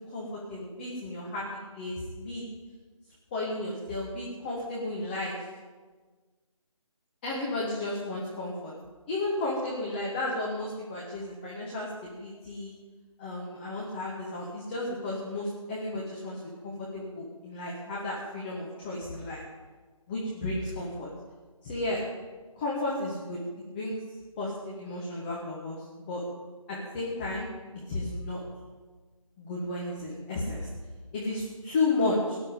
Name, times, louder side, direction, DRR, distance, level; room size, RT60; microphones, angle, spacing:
voice 1, 0.1-2.4 3.3-5.5 7.2-8.7 9.1-12.7 13.2-19.4 20.1-21.1 21.6-22.0 22.6-23.4 23.7-24.0 24.4-26.2 26.7-27.5 27.9-28.4 29.4-30.7 31.1-32.4, left 2 dB, 20° left, -4 dB, 1.6 m, -33 dB
18.0 x 11.5 x 5.3 m, 1.4 s
figure-of-eight pair, 155°, 18 cm